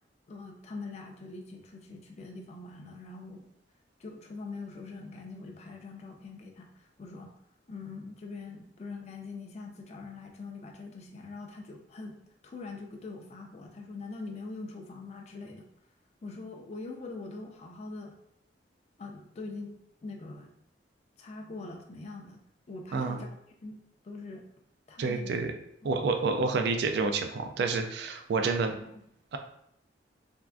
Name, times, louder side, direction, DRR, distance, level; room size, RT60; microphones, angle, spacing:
voice 1, 0.3-3.5 4.0-6.7 7.0-7.3 7.7-12.1 12.4-15.6 16.2-18.1 19.0-19.7 20.0-20.5 21.2-22.4 22.7-23.3 23.6-23.8 24.0-24.5 24.9-25.4 25.9-26.1 26.4-26.6 28.7-28.9, left 3 dB, 35° left, 1 dB, 0.4 m, -43 dB
voice 2, 22.9-23.2 25.0-25.5 25.8-28.7 29.3-29.4, right 4 dB, 65° right, 6 dB, 0.3 m, -29 dB
3.5 x 2.4 x 2.3 m, 0.73 s
head